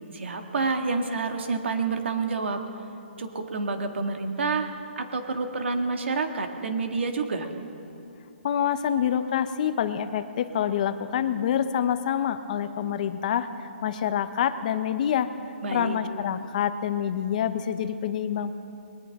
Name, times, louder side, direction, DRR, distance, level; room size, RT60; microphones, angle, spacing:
voice 1, 0.1-2.7 3.2-7.5 15.6-16.0, right 4 dB, 70° right, 5 dB, 1.8 m, -28 dB
voice 2, 8.4-15.3 15.7-18.5, left 9 dB, 40° left, 11 dB, 0.7 m, -27 dB
21.0 x 19.0 x 3.6 m, 2.8 s
hypercardioid pair, 160°, 7 cm